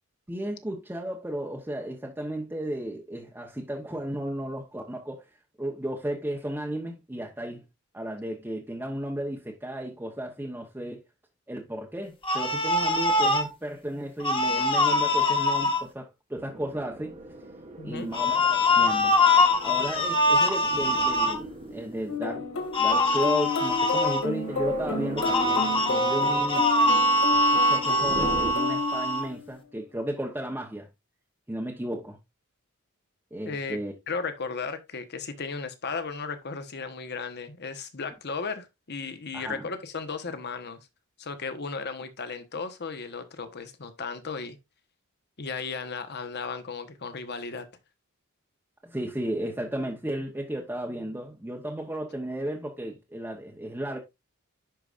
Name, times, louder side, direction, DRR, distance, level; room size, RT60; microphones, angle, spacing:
voice 1, 0.3-5.3 5.6-7.6 7.9-11.0 11.5-17.1 17.8-19.1 19.6-22.5 22.8-27.1 27.7-30.9 31.5-32.2 33.3-33.9 39.3-39.7 48.8-54.0, right 1 dB, 10° right, 0.9 m, -34 dB
sound 1, 12.2-13.5 14.2-15.8 18.1-21.3 22.7-24.2 25.2-29.3, left 2 dB, 25° left, 1.2 m, -23 dB
sound 2, 16.3-28.5, right 1 dB, 30° right, 1.1 m, -41 dB
voice 2, 17.8-18.1 33.4-33.8 34.1-40.8 41.2-44.6 45.4-47.7, left 4 dB, 50° left, 1.1 m, -35 dB
sound 3, 22.1-29.5, left 3 dB, 75° left, 2.1 m, -32 dB
10.5 x 4.9 x 2.5 m
head